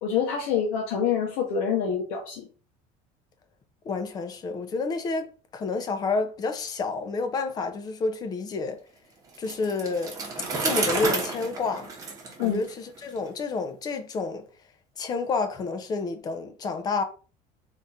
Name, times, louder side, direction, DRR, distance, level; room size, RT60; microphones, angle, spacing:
voice 1, 0.0-2.5 12.4-12.6, left 7 dB, 90° left, 0.9 m, -26 dB
voice 2, 3.8-8.8 9.4-10.2 10.5-11.9 12.4-14.4 15.0-17.0, left 4 dB, 25° left, 0.5 m, -29 dB
Bicycle, 9.3-13.2, right 3 dB, 20° right, 0.9 m, -31 dB
3.6 x 2.4 x 4.1 m
cardioid pair, 175°, 16 cm